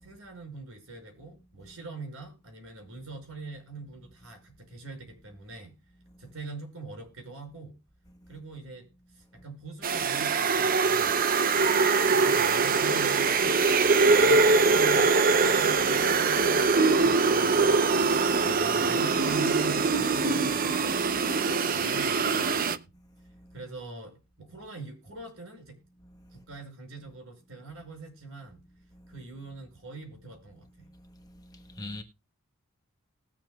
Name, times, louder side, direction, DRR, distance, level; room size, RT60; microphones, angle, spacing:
voice 1, 0.0-5.8 6.2-7.8 8.3-11.2 11.6-13.6 14.1-15.1 15.4-20.8 21.2-22.9 23.5-25.8 26.3-28.6 29.1-30.9, right 3 dB, 65° right, 5.4 m, -43 dB
sound 1, 9.8-22.8, right 4 dB, 40° right, 0.6 m, -23 dB
voice 2, 31.2-32.0, left 2 dB, 15° left, 1.2 m, -43 dB
20.0 x 7.5 x 2.3 m
head